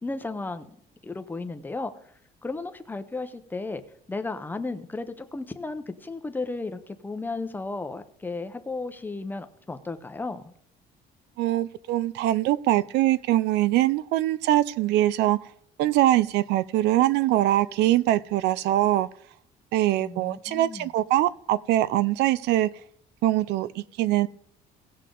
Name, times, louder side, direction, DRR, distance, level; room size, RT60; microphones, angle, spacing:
voice 1, 0.0-0.8 1.0-1.9 2.4-3.8 4.1-10.5 20.0-20.9, left 3 dB, 10° left, 0.7 m, -34 dB
voice 2, 11.4-15.4 15.8-19.1 19.7-22.7 23.2-24.3, right 14 dB, 80° right, 0.5 m, -23 dB
18.0 x 6.6 x 3.8 m
cardioid pair, 155°, 17 cm